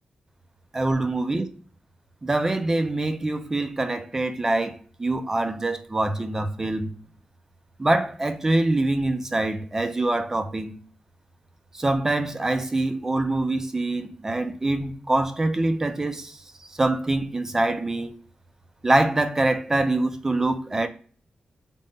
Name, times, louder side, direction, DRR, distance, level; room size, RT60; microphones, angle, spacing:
voice 1, 0.7-1.5 2.2-6.9 7.8-10.8 11.7-16.4 16.8-18.1 18.8-20.9, right 2 dB, 20° right, 0.3 m, -24 dB
3.5 x 2.1 x 3.7 m
wide cardioid pair, 150°, 3 cm